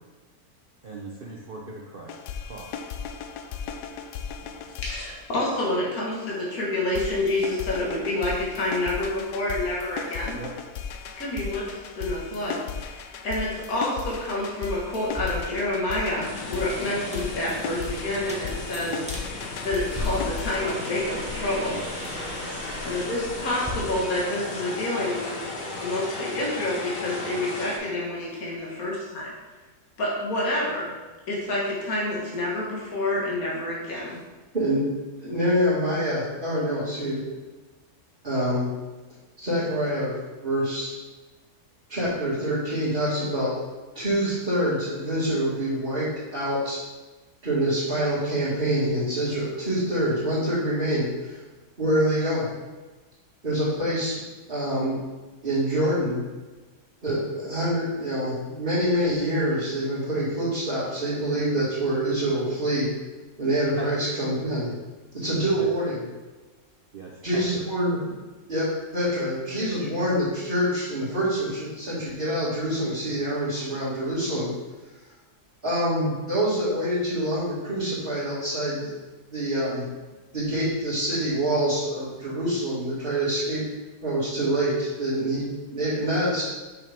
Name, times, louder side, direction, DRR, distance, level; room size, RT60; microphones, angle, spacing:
voice 1, 0.8-2.8 10.3-10.5 21.7-22.2 63.8-63.9 65.6-65.7 66.9-67.6, right 3 dB, 50° right, -2 dB, 0.6 m, -39 dB
sound 1, 2.1-5.8 6.9-20.9, left 7 dB, 80° left, 1.1 m, -36 dB
voice 2, 4.8-10.4 11.2-21.8 22.8-25.3 25.8-29.3 30.0-31.0 31.3-34.2, left 1 dB, 60° left, -4 dB, 2.0 m, -28 dB
sound 2, 15.0-23.7, left 1 dB, 5° right, 0.8 m, -38 dB
sound 3, 16.2-27.8, left 2 dB, 40° left, 1.2 m, -35 dB
voice 3, 34.5-37.2 38.2-38.7 39.4-40.1 40.4-40.9 41.9-43.5 43.9-46.8 47.4-51.4 51.8-52.5 53.4-54.2 54.5-55.0 55.4-56.2 57.0-62.9 63.4-64.7 65.1-66.0 67.2-68.0 68.5-74.5 75.6-78.9 79.3-79.8 80.3-83.6 84.0-86.4, equal, 35° right, -12 dB, 2.2 m, -26 dB
6.3 x 5.8 x 3.5 m, 1.2 s
omnidirectional pair, 1.7 m